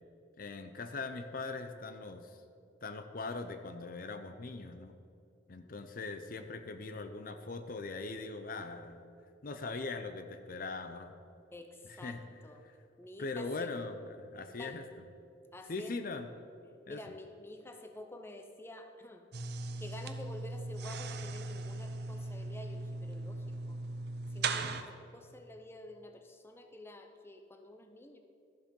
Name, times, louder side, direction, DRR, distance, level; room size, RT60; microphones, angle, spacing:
voice 1, 0.4-2.4 2.8-4.9 5.5-9.1 9.4-11.1 12.0-12.2 13.2-14.9 15.7-16.3 16.9-17.0, left 3 dB, 50° left, 8 dB, 0.6 m, -40 dB
voice 2, 11.5-12.2 12.4-12.6 13.0-13.7 14.6-14.8 15.5-15.9 16.9-19.2 19.8-23.8 24.3-28.2, left 1 dB, 15° left, 5 dB, 0.7 m, -49 dB
sound 1, 19.3-24.8, right 3 dB, 60° right, 0.7 m, -38 dB
13.0 x 7.4 x 5.4 m, 2.5 s
head